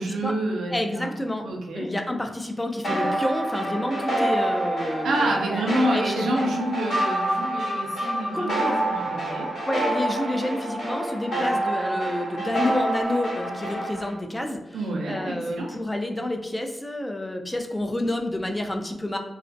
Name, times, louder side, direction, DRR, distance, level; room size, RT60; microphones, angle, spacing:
voice 1, 0.0-1.1 1.4-1.9 5.0-9.5 14.7-15.8, right 1 dB, 90° right, 0 dB, 0.4 m, -28 dB
voice 2, 0.7-1.4 1.7-6.5 8.3-8.8 9.7-14.8 15.1-19.2, left 1 dB, 20° left, 4 dB, 0.4 m, -29 dB
sound 1, 2.8-14.1, right 1 dB, 75° left, 0.8 m, -27 dB
2.3 x 2.1 x 2.5 m, 0.93 s
cardioid pair, 50°, 0 cm